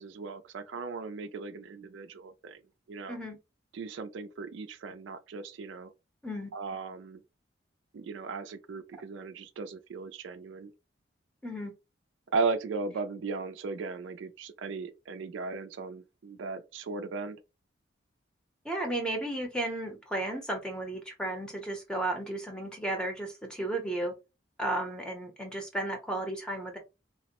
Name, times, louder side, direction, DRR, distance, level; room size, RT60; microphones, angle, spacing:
voice 1, 0.0-2.6 2.9-3.2 3.7-5.9 6.5-7.2 7.9-10.7 12.3-17.4, right 4 dB, 80° right, 0.4 m, -36 dB
voice 2, 11.4-11.7 18.6-24.1 24.6-26.8, right 1 dB, 5° left, 0.6 m, -34 dB
2.9 x 2.0 x 2.8 m
head